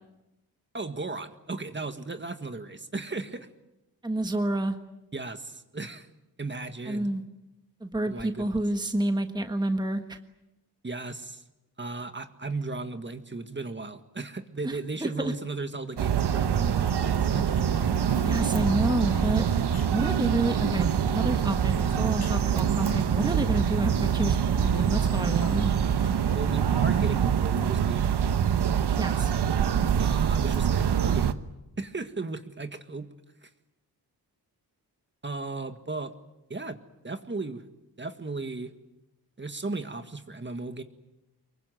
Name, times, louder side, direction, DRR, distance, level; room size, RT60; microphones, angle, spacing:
voice 1, 0.7-3.5 5.1-6.1 6.4-7.1 8.1-8.6 10.8-11.4 11.8-17.5 26.4-28.2 30.0-31.4 31.8-33.1 33.4-33.5 35.2-36.1 36.5-36.8 37.0-37.6 38.0-38.7 39.4-40.8, right 3 dB, 30° right, 9 dB, 1.7 m, -36 dB
voice 2, 4.0-4.8 6.8-7.2 7.8-10.2 14.6-15.3 18.2-19.5 19.9-25.7 28.9-29.3, right 1 dB, 10° right, 7 dB, 1.5 m, -29 dB
sound 1, 16.0-31.3, right 8 dB, 85° right, 1.1 m, -25 dB
sound 2, 16.7-27.2, left 6 dB, 65° left, 2.5 m, -44 dB
25.0 x 23.0 x 9.3 m, 0.95 s
wide cardioid pair, 100°, 39 cm